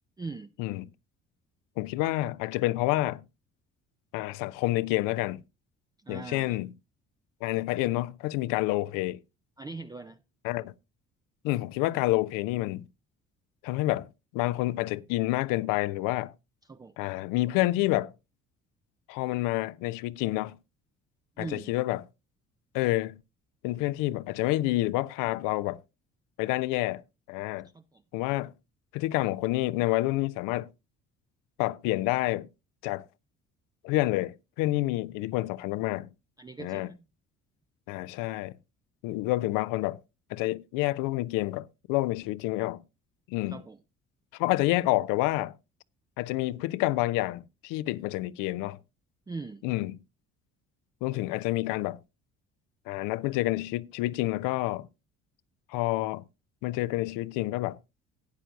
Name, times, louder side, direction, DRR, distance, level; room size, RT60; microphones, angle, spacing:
voice 1, 0.2-0.5 6.0-6.6 9.6-10.2 16.7-17.0 21.4-21.7 27.7-28.0 36.4-37.0 43.5-43.8 49.3-49.6, right 3 dB, 10° right, 0.4 m, -41 dB
voice 2, 1.8-3.2 4.1-5.4 6.1-6.7 7.4-9.2 10.4-10.7 11.4-12.8 13.6-14.1 14.3-16.3 17.0-18.1 19.1-20.6 21.4-22.0 22.7-23.2 23.6-25.8 26.4-27.0 27.3-27.7 28.1-28.5 28.9-30.7 31.6-32.5 32.8-33.1 33.8-36.1 36.6-36.9 37.9-38.5 39.0-40.0 40.3-42.8 43.3-43.6 44.3-45.5 46.2-48.8 49.6-50.0 51.0-52.0 52.9-54.9 55.7-56.2 56.6-57.8, left 18 dB, 55° left, 0.6 m, -28 dB
16.0 x 10.0 x 2.5 m
figure-of-eight pair, 50°, 38 cm